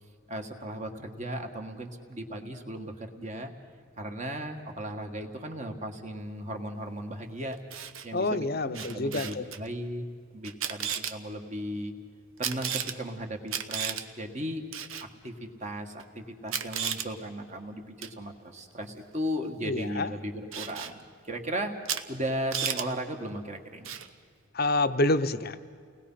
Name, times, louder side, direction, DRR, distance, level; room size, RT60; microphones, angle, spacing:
voice 1, 0.3-3.5 4.0-7.6 8.0-11.9 12.4-14.7 15.0-21.8 22.1-23.9, equal, 35° right, 4 dB, 1.8 m, -36 dB
Camera, 7.5-8.1 8.7-9.6 10.4-11.1 12.4-13.0 13.5-14.0 14.7-15.1 16.0-16.1 16.5-17.1 18.0-18.2 20.5-20.9 21.9-22.0 22.3-22.9 23.9-24.1, right 8 dB, 70° right, 1.1 m, -33 dB
voice 2, 8.1-9.5 19.6-20.1 24.5-25.6, left 2 dB, 45° left, 11 dB, 0.8 m, -27 dB
30.0 x 20.0 x 5.8 m, 2.1 s
head